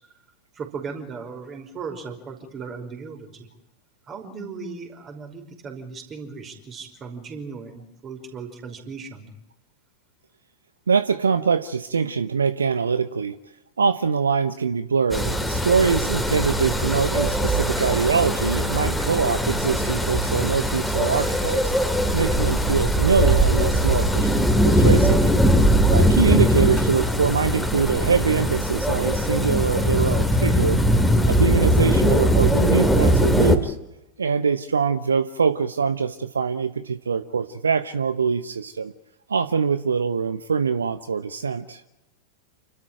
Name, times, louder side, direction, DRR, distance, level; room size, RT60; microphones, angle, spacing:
voice 1, 0.5-3.5 4.1-9.3, right 5 dB, 25° right, 4 dB, 5.3 m, -37 dB
voice 2, 10.9-13.4 13.8-21.7 22.1-25.2 25.9-30.8 31.2-33.8 34.2-38.9 39.3-41.8, right 5 dB, 70° right, 13 dB, 0.9 m, -23 dB
sound 1, 15.1-33.6, equal, 5° left, 2.8 m, -20 dB
29.5 x 13.5 x 9.1 m, 0.95 s
figure-of-eight pair, 90°, 0 cm